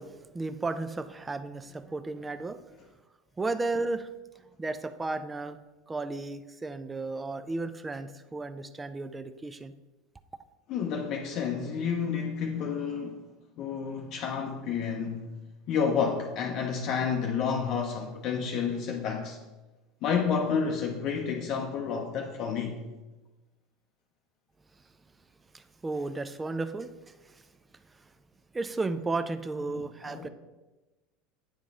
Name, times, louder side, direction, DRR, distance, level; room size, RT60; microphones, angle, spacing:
voice 1, 0.0-2.8 3.4-4.1 4.4-5.6 5.9-9.7 25.5-27.4 27.7-28.1 28.5-30.3, right 3 dB, 20° right, 0.4 m, -34 dB
voice 2, 10.7-13.2 13.6-15.3 15.7-19.4 20.0-22.8 29.7-30.3, left 6 dB, 55° left, 0.6 m, -30 dB
8.7 x 3.7 x 3.6 m
hypercardioid pair, 80°, 0 cm